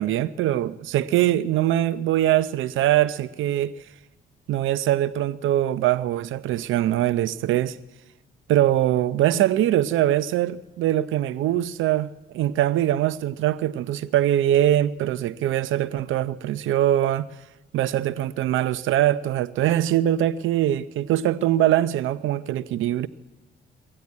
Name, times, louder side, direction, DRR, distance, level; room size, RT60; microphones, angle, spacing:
voice 1, 0.0-3.7 4.5-7.8 8.5-12.1 12.3-17.3 17.7-23.1, right 12 dB, 80° right, 0.7 m, -22 dB
22.5 x 15.0 x 9.6 m
cardioid pair, 90°, 20 cm